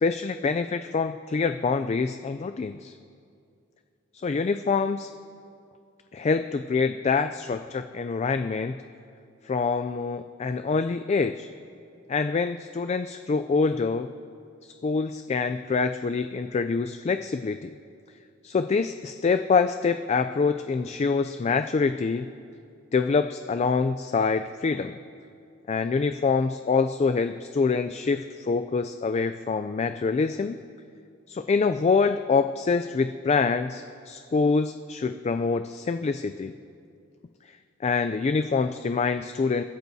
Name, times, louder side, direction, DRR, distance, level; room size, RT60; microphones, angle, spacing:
voice 1, 0.0-2.9 4.2-5.1 6.1-8.8 9.5-11.5 12.1-14.1 14.6-17.7 18.4-22.3 22.9-24.9 25.7-30.6 31.3-36.5 37.8-39.6, left 4 dB, 35° left, 9 dB, 0.3 m, -25 dB
29.5 x 13.5 x 2.7 m, 2.4 s
head